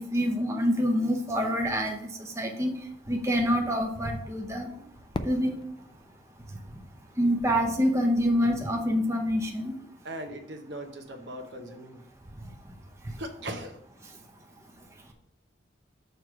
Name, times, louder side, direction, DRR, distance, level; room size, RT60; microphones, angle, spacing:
voice 1, 0.0-2.1 2.4-2.7 3.1-4.7 5.2-5.5 7.2-9.7, equal, 15° right, 1 dB, 0.8 m, -26 dB
Fireworks, 5.1-8.0, left 2 dB, 25° left, 0.3 m, -40 dB
voice 2, 10.0-12.0 13.2-13.8, right 1 dB, 65° right, 3 dB, 1.0 m, -39 dB
6.6 x 3.1 x 5.9 m, 0.70 s
head